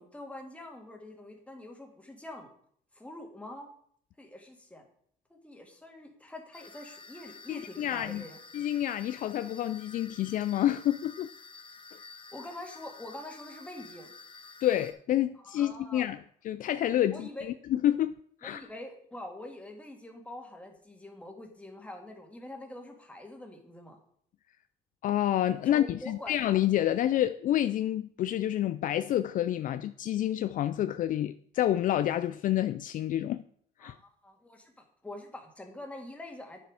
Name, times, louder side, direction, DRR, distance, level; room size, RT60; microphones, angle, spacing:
voice 1, 0.0-2.5 2.9-3.7 4.2-4.9 5.3-8.4 12.3-14.1 15.4-16.1 17.1-17.5 18.4-24.0 25.6-26.4 33.8-36.6, left 1 dB, 10° left, 2.0 m, -45 dB
sound 1, 6.5-14.9, left 4 dB, 30° left, 1.2 m, -50 dB
voice 2, 7.5-8.2 8.5-11.3 14.6-16.2 16.4-18.1 18.4-18.7 25.0-33.4 33.8-34.0, left 12 dB, 55° left, 0.4 m, -28 dB
9.3 x 6.9 x 4.9 m
cardioid pair, 110°, 17 cm